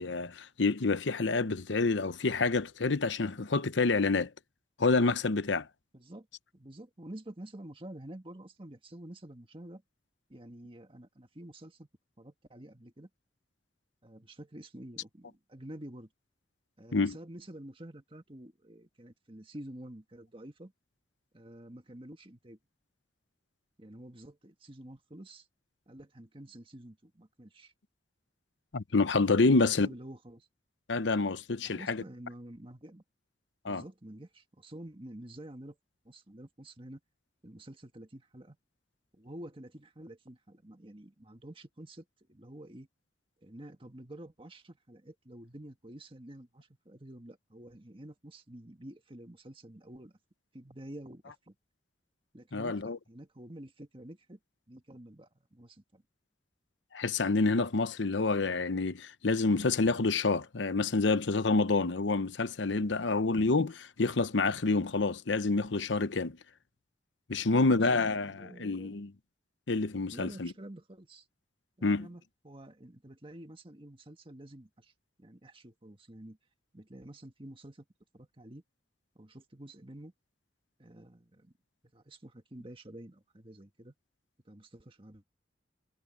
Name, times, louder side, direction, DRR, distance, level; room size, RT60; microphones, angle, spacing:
voice 1, 0.0-4.3 4.8-5.7 16.9-17.1 28.7-29.9 30.9-32.0 33.6-33.8 52.5-53.0 56.9-66.4 67.3-69.1 69.7-70.5 71.8-72.1, left 3 dB, 80° left, 0.9 m, -28 dB
voice 2, 5.9-6.3 6.5-9.8 10.3-11.9 12.2-13.1 14.0-16.1 16.8-20.7 21.3-22.6 23.8-25.5 25.9-27.7 29.5-30.5 31.6-33.0 33.6-35.8 36.1-37.0 37.4-38.6 39.1-42.9 43.4-50.1 50.5-51.6 52.3-54.4 54.7-56.0 67.4-68.0 68.3-68.9 70.1-71.3 71.8-74.9 75.2-76.4 76.7-77.9 78.1-78.6 79.2-80.1 80.8-81.5 81.9-83.9 84.5-85.2, right 1 dB, 30° right, 1.8 m, -49 dB
head